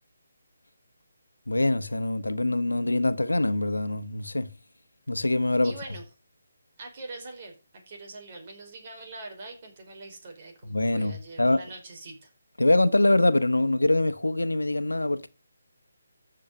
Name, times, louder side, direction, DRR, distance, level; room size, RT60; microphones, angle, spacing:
voice 1, 1.5-4.5 5.1-5.8 10.6-11.6 12.6-15.3, left 2 dB, 85° left, 1.3 m, -24 dB
voice 2, 5.6-6.0 6.8-7.5 7.9-12.3, right 3 dB, 40° right, 5.1 m, -43 dB
14.0 x 6.7 x 6.7 m
figure-of-eight pair, 150°, 0 cm